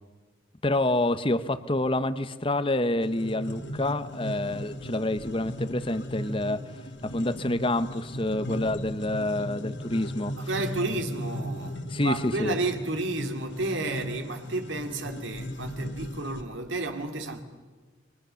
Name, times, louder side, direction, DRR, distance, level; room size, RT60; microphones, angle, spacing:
voice 1, 0.6-6.6 7.0-10.3 11.9-12.6, left 1 dB, 25° left, 0.9 m, -27 dB
sound 1, 3.0-16.4, equal, 65° left, 2.0 m, -37 dB
voice 2, 10.4-17.4, right 2 dB, 70° right, 2.7 m, -32 dB
29.5 x 25.0 x 7.0 m
head